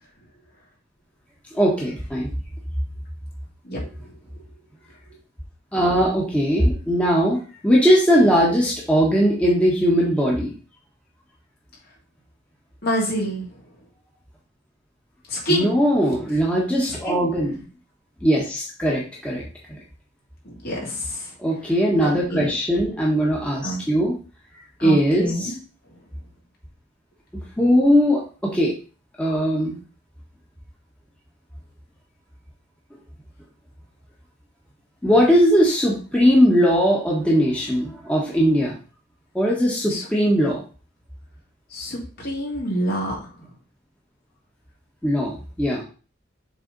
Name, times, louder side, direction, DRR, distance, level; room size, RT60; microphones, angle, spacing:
voice 1, 1.5-2.3 5.7-10.5 15.5-17.6 18.2-19.4 19.7-19.8 21.4-24.2 24.8-25.5 27.6-28.7 29.2-29.8 35.0-38.7 39.3-40.6 45.0-45.8, equal, 5° left, -4 dB, 1.5 m, -19 dB
voice 2, 12.8-13.5 15.3-15.7 17.0-17.2 20.4-21.3 22.0-22.5 23.6-23.9 24.8-25.6 39.9-40.0 41.7-43.1, equal, 55° left, -3 dB, 2.9 m, -27 dB
6.9 x 4.1 x 4.1 m, 0.37 s
head